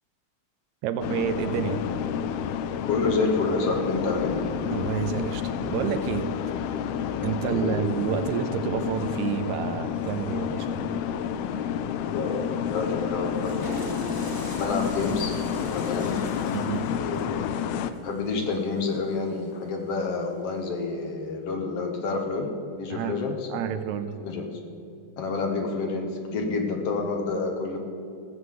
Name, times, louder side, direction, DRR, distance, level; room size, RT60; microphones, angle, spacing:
voice 1, 0.8-1.8 4.7-6.3 7.2-10.9 16.5-16.9 22.9-23.2 23.5-24.1, right 9 dB, 80° right, 9 dB, 1.9 m, -29 dB
sound 1, 1.0-17.9, left 8 dB, 90° left, 1.3 m, -30 dB
voice 2, 2.9-4.5 7.5-7.9 12.1-14.2 14.5-16.2 17.0-17.4 18.0-23.5 24.2-24.5 25.2-27.8, left 4 dB, 60° left, 3 dB, 2.0 m, -29 dB
Water / Toilet flush, 13.2-19.4, equal, 10° left, 1.1 m, -42 dB
14.5 x 8.1 x 7.7 m, 2.5 s
omnidirectional pair, 3.4 m